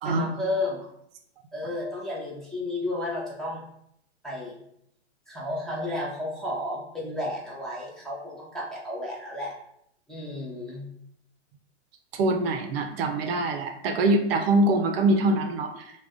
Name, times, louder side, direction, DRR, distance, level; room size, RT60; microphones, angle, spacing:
voice 1, 0.0-0.9 1.5-3.6 4.2-4.6 5.3-9.5 10.1-10.9, left 1 dB, ahead, -7 dB, 0.7 m, -32 dB
voice 2, 12.1-15.9, right 2 dB, 60° right, 4 dB, 0.5 m, -24 dB
2.4 x 2.2 x 3.5 m, 0.74 s
hypercardioid pair, 125°, 34 cm